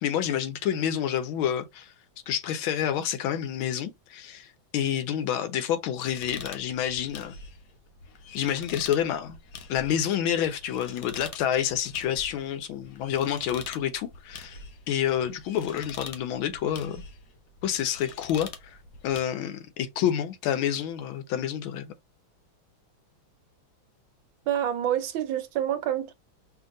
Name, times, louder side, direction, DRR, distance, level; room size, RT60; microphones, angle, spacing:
voice 1, 0.0-1.9 2.3-4.5 4.7-7.3 8.3-9.4 9.7-14.6 14.9-17.0 17.6-18.8 19.0-21.9, left 10 dB, 85° left, 1.5 m, -28 dB
sound 1, 6.0-19.2, left 5 dB, 60° left, 0.9 m, -45 dB
voice 2, 24.5-26.1, right 10 dB, 75° right, 1.4 m, -27 dB
5.4 x 2.5 x 2.6 m
omnidirectional pair, 2.2 m